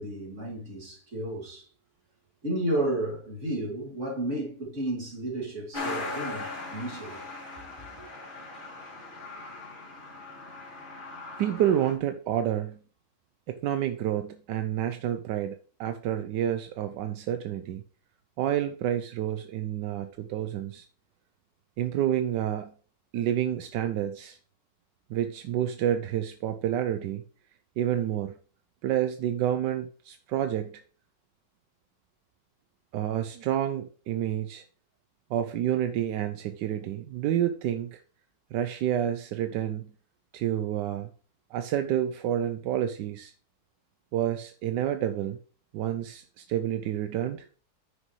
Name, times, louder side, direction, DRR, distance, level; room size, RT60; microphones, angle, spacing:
voice 1, 0.0-1.7 2.4-7.2 7.8-7.9, right 1 dB, 45° right, 2.7 m, -32 dB
Truck, 5.7-11.9, left 2 dB, 30° left, 1.9 m, -39 dB
voice 2, 11.4-12.8 13.5-15.5 15.8-17.8 18.4-20.9 21.8-22.7 23.1-24.4 25.1-27.2 27.8-28.3 28.8-30.7 32.9-34.6 35.3-38.0 38.5-39.9 40.3-41.1 41.5-43.3 44.1-45.4 45.7-47.5, right 11 dB, 80° right, 1.2 m, -29 dB
9.4 x 6.5 x 3.1 m
omnidirectional pair, 1.8 m